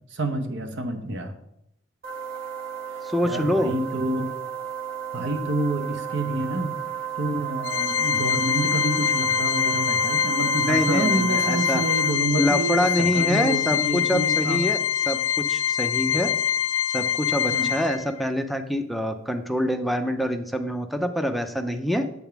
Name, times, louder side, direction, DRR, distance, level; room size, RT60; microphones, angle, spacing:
voice 1, 0.1-1.3 3.2-4.3 5.1-6.7 7.2-14.6 17.5-17.7, right 1 dB, 60° right, 7 dB, 0.9 m, -28 dB
sound 1, 2.0-12.1, right 10 dB, 45° right, 1.5 m, -32 dB
voice 2, 3.0-3.7 10.6-11.8 12.4-14.8 15.1-16.3 16.9-22.0, equal, ahead, 7 dB, 0.4 m, -25 dB
Organ, 7.6-18.3, left 9 dB, 70° left, 0.4 m, -24 dB
8.0 x 3.6 x 5.8 m, 0.79 s
head